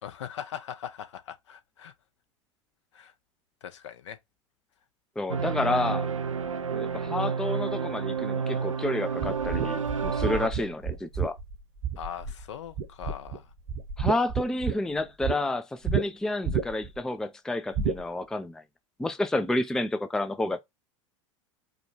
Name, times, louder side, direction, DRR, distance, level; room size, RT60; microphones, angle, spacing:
voice 1, 0.0-1.9 2.9-3.1 3.6-4.2 12.0-13.5, left 9 dB, 65° left, 0.8 m, -40 dB
voice 2, 5.2-6.1 6.7-11.4 14.0-18.6 19.0-20.6, left 2 dB, 5° left, 0.4 m, -30 dB
sound 1, 5.3-10.5, right 6 dB, 80° right, 0.4 m, -30 dB
sound 2, 9.2-12.4 12.8-13.4 13.7-15.4 15.9-16.0 16.4-17.0 17.7-18.0, right 6 dB, 50° right, 1.0 m, -29 dB
4.9 x 2.3 x 3.0 m
figure-of-eight pair, 80°, 17 cm